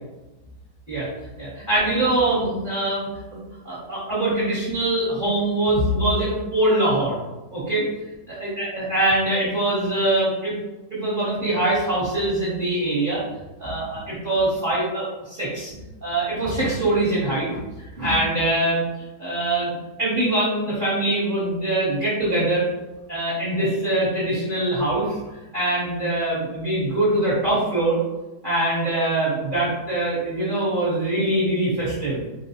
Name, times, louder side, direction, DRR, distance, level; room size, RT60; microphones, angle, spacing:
voice 1, 1.4-3.4 3.6-7.2 7.5-7.9 8.4-10.5 10.9-13.2 13.6-17.6 18.0-18.8 19.2-22.6 23.1-25.2 25.5-28.0 28.4-32.2, right 1 dB, 40° right, -9 dB, 0.8 m, -23 dB
3.9 x 2.0 x 2.7 m, 1.1 s
omnidirectional pair, 1.8 m